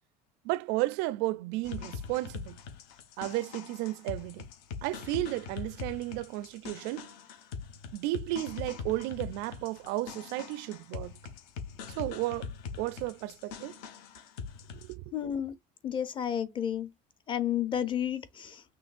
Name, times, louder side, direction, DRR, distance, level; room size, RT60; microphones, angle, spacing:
voice 1, 0.4-2.6 3.2-4.5 4.8-7.1 7.9-11.2 11.9-13.8 14.7-15.1, right 17 dB, 70° right, 0.4 m, -33 dB
sound 1, 1.6-14.9, left 5 dB, 75° left, 1.2 m, -42 dB
voice 2, 15.1-15.5 15.8-16.9 17.3-18.6, left 9 dB, 25° left, 0.6 m, -31 dB
6.2 x 3.0 x 2.5 m
cardioid pair, 160°, 19 cm